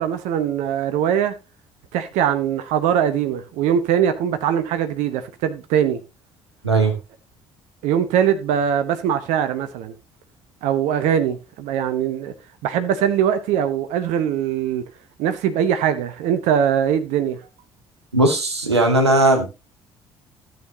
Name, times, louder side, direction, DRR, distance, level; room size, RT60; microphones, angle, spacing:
voice 1, 0.0-1.3 1.9-6.0 7.8-9.9 10.6-12.3 12.6-14.8 15.2-17.4, right 9 dB, 60° right, 1.0 m, -21 dB
voice 2, 6.6-6.9 18.1-19.5, right 2 dB, 85° right, 1.4 m, -17 dB
12.5 x 7.8 x 2.8 m
figure-of-eight pair, 50°, 14 cm